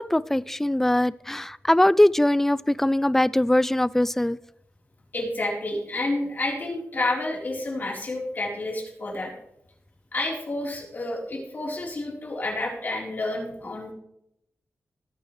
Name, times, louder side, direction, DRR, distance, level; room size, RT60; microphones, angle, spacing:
voice 1, 0.0-4.4, left 1 dB, 5° left, 0.3 m, -21 dB
voice 2, 5.1-9.3 10.1-13.9, left 2 dB, 40° left, 4.0 m, -29 dB
18.5 x 9.0 x 3.3 m
wide cardioid pair, 150°, 5 cm